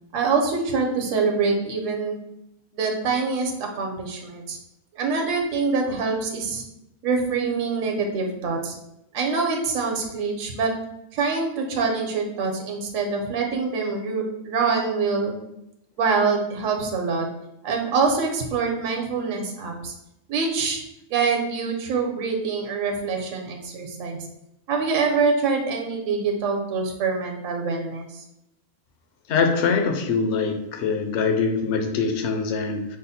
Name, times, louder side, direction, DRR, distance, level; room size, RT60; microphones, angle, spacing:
voice 1, 0.1-2.2 2.7-4.6 5.0-6.6 7.0-8.7 9.1-10.7 11.1-15.3 16.0-17.3 17.6-19.9 20.3-20.8 21.1-24.2 24.7-28.2, right 4 dB, 65° right, 2 dB, 1.1 m, -25 dB
voice 2, 29.3-32.9, left 5 dB, 60° left, 4 dB, 0.9 m, -23 dB
5.6 x 2.1 x 4.1 m, 0.85 s
omnidirectional pair, 1.5 m